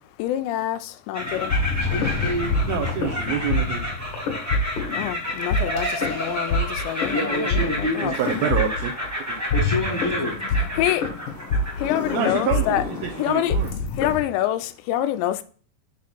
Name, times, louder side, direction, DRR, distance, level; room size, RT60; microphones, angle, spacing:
voice 1, 0.2-1.5 4.9-8.1 10.8-11.0 11.8-12.8 13.2-13.6 14.0-15.4, left 13 dB, 85° left, 2.9 m, -26 dB
sound 1, 1.1-13.7, left 1 dB, 15° right, 0.5 m, -31 dB
sound 2, 1.2-14.2, left 3 dB, 60° left, 2.5 m, -26 dB
voice 2, 1.8-2.5 7.1-8.5 9.5-10.3, left 1 dB, 15° left, 0.7 m, -27 dB
voice 3, 2.7-3.8 7.9-8.9 12.1-13.7, right 8 dB, 80° right, 2.2 m, -27 dB
6.7 x 3.6 x 5.9 m
omnidirectional pair, 4.9 m